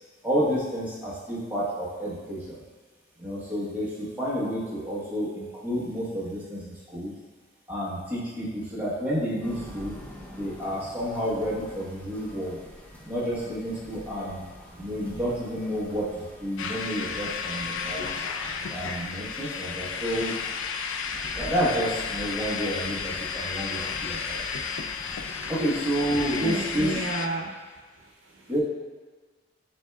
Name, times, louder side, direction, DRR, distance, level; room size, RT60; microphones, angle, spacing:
voice 1, 0.2-2.5 3.2-7.1 7.7-10.0 10.3-12.6 13.1-14.4 14.8-18.1 18.7-20.3 21.4-24.4 25.5-26.9 28.5-28.6, equal, 10° right, -8 dB, 1.1 m, -30 dB
sound 1, 9.4-27.1, equal, 5° left, 0.5 m, -45 dB
sound 2, 16.6-27.3, left 6 dB, 70° left, 0.3 m, -33 dB
voice 2, 25.4-27.6 27.9-28.5, right 2 dB, 75° right, -1 dB, 0.7 m, -34 dB
6.1 x 3.7 x 2.3 m, 1.4 s
head